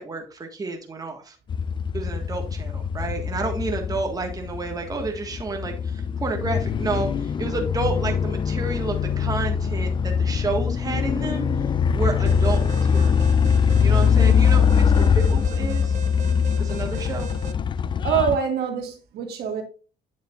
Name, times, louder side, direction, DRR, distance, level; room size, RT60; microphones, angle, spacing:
voice 1, 0.0-1.4 1.9-11.5 11.9-13.3 13.8-16.0 16.6-17.3, right 3 dB, 20° right, 1.5 m, -30 dB
sound 1, 1.5-18.4, left 7 dB, 30° left, 0.4 m, -22 dB
Alarm, 12.3-17.5, right 8 dB, 45° right, 0.5 m, -40 dB
voice 2, 18.0-19.6, right 7 dB, 70° right, 1.8 m, -25 dB
8.8 x 7.0 x 2.4 m
cardioid pair, 110°, 17 cm